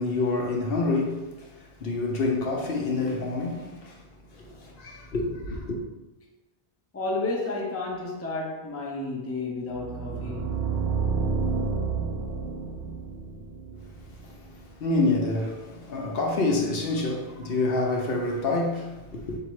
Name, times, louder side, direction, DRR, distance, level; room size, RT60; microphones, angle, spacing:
voice 1, 0.0-4.0 4.3-5.8 14.2-14.3 14.8-19.4, left 2 dB, 65° left, 0.9 m, -27 dB
voice 2, 6.9-10.7, left 2 dB, 20° left, 0.5 m, -32 dB
sound 1, 9.7-14.7, right 5 dB, 80° right, 0.8 m, -30 dB
4.0 x 2.8 x 4.6 m
omnidirectional pair, 1.1 m